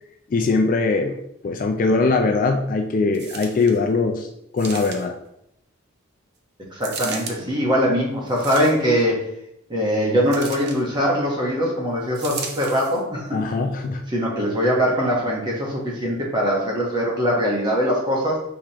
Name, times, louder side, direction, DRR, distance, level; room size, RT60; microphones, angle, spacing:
voice 1, 0.3-1.2 1.4-4.3 4.5-5.1 13.3-14.0, left 3 dB, 40° left, 4 dB, 0.3 m, -21 dB
sound 1, 3.1-3.8 4.6-5.3 6.8-7.4 8.3-9.0 10.3-10.8 12.1-13.0 13.7-13.8, right 5 dB, 50° right, 0.6 m, -35 dB
voice 2, 6.7-9.2 9.7-13.3 14.1-18.4, equal, 20° right, -3 dB, 1.1 m, -22 dB
4.8 x 3.5 x 2.9 m, 0.77 s
head